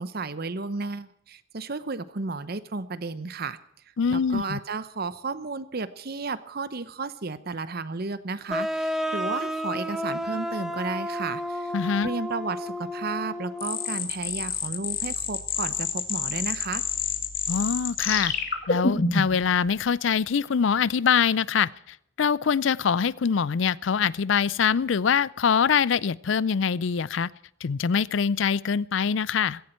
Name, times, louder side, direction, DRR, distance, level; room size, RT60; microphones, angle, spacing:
voice 1, 0.0-3.6 4.1-11.7 12.0-16.8, right 3 dB, 50° right, 14 dB, 0.8 m, -33 dB
voice 2, 4.0-4.6 11.7-12.1 17.5-18.3 18.7-27.3 27.6-29.6, left 6 dB, 70° left, 22 dB, 0.4 m, -24 dB
sound 1, 8.5-14.0, equal, 5° right, 1.3 m, -31 dB
sound 2, 13.6-19.4, left 5 dB, 50° left, 2.2 m, -28 dB
17.0 x 15.0 x 4.4 m, 0.74 s
head